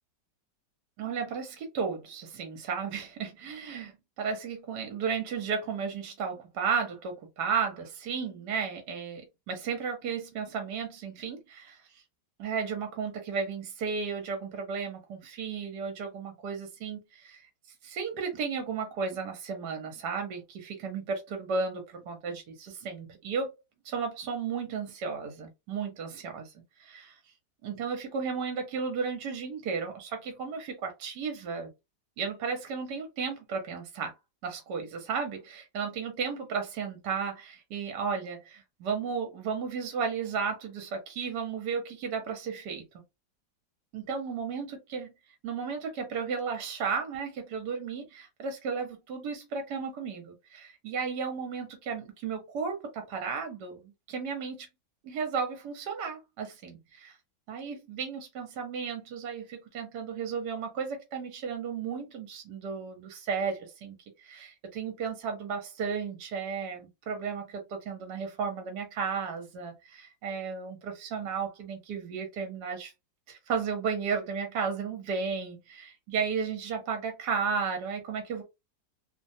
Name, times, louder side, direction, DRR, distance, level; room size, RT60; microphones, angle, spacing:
voice 1, 1.0-12.0 12.4-17.4 17.8-23.5 23.8-26.5 26.8-27.2 27.6-31.7 32.2-34.1 34.4-42.8 43.9-45.1 45.4-54.7 55.0-57.2 57.5-72.9 73.3-78.4, right 5 dB, 70° right, 1.4 m, -34 dB
3.1 x 2.2 x 2.6 m
omnidirectional pair, 1.9 m